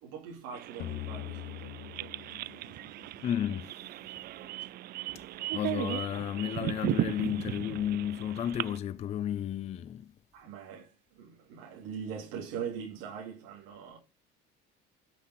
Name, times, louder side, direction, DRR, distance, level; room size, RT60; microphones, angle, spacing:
voice 1, 0.0-2.2 10.3-14.0, right 7 dB, 90° right, 2.6 m, -42 dB
sound 1, 0.5-8.8, right 16 dB, 50° right, 0.4 m, -37 dB
sound 2, 0.8-4.0, left 14 dB, 50° left, 0.8 m, -43 dB
voice 2, 3.2-3.9 5.1-5.3 5.5-10.1, left 10 dB, 30° left, 0.4 m, -33 dB
9.4 x 5.9 x 4.7 m
cardioid pair, 125°, 21 cm